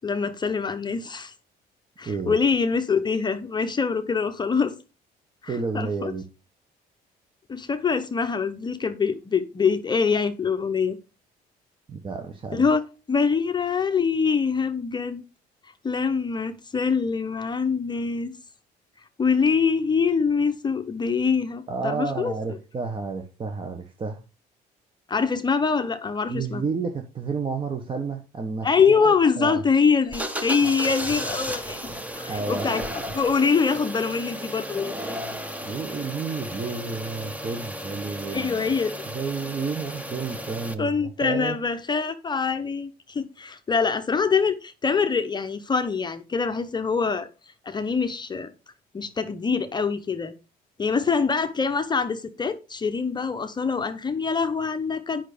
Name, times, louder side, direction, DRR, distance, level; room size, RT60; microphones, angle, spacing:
voice 1, 0.0-1.3 2.0-4.7 5.4-6.1 7.5-11.0 12.5-12.8 13.1-15.2 15.8-18.3 19.2-22.3 25.1-26.6 28.6-31.8 32.1-32.9 33.1-35.1 38.3-38.9 40.8-47.3 47.6-48.5 48.9-50.3 50.8-55.3, left 5 dB, 25° left, 0.9 m, -24 dB
voice 2, 2.0-2.4 5.5-6.2 11.9-12.6 21.7-24.2 26.3-29.6 30.6-30.7 32.3-32.7 35.7-38.8 39.1-41.6, right 4 dB, 30° right, 1.3 m, -31 dB
sound 1, 30.1-40.7, equal, 10° right, 1.2 m, -34 dB
9.2 x 5.8 x 5.1 m
cardioid pair, 110°, 17 cm